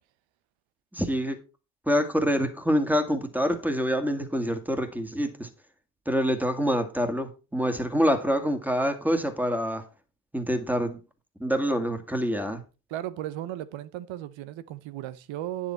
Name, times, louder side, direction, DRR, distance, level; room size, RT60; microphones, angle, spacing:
voice 1, 0.9-1.4 1.9-5.5 6.1-9.8 10.3-11.0 11.4-12.6, equal, 5° right, 2.1 m, -26 dB
voice 2, 12.9-15.7, right 13 dB, 65° right, 1.0 m, -35 dB
9.8 x 7.2 x 4.4 m
hypercardioid pair, 55°, 50 cm